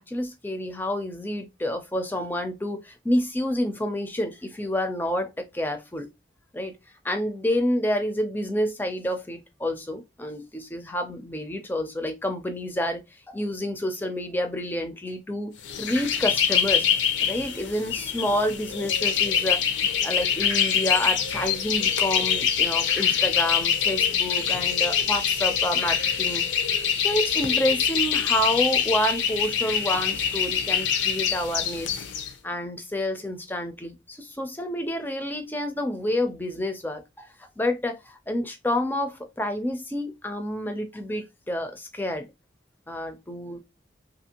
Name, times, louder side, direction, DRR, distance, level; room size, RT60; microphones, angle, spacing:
voice 1, 0.0-6.1 6.5-6.7 7.0-13.0 13.3-15.5 15.8-16.9 17.2-19.6 20.0-26.4 26.9-32.1 32.4-37.3 37.6-42.3 42.9-43.6, left 1 dB, 10° left, 0.4 m, -29 dB
sound 1, 15.6-32.3, left 8 dB, 80° left, 0.5 m, -24 dB
2.8 x 2.5 x 2.8 m
head